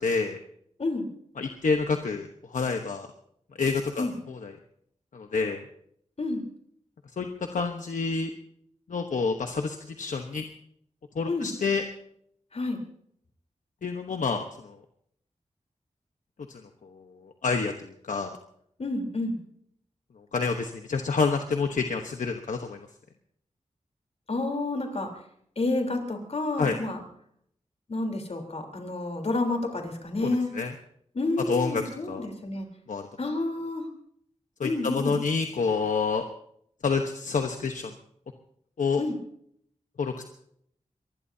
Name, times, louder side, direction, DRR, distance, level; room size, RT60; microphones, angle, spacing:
voice 1, 0.0-0.4 1.4-3.1 3.6-4.5 5.1-5.6 7.2-8.3 8.9-10.4 11.1-11.8 13.8-14.8 16.5-16.6 16.9-18.4 20.3-22.8 26.6-26.8 30.5-30.7 31.5-31.8 32.1-32.2 32.9-33.1 34.6-36.2 36.8-37.9 38.8-39.0 40.0-40.2, left 4 dB, 80° left, 5 dB, 1.1 m, -28 dB
voice 2, 18.8-19.4 24.3-25.1 25.6-27.0 27.9-30.5 31.1-32.7 33.2-33.9 34.6-35.2 39.0-39.2, left 2 dB, 55° left, 4 dB, 3.8 m, -29 dB
24.0 x 20.0 x 2.8 m, 0.69 s
wide cardioid pair, 70°, 13 cm